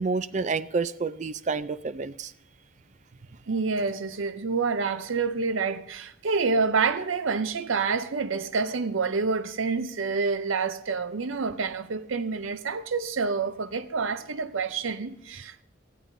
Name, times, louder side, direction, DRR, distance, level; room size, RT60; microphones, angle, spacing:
voice 1, 0.0-2.3, right 4 dB, 35° right, 0.4 m, -29 dB
voice 2, 3.5-15.6, right 4 dB, 80° right, 0.6 m, -28 dB
20.0 x 14.0 x 2.7 m
head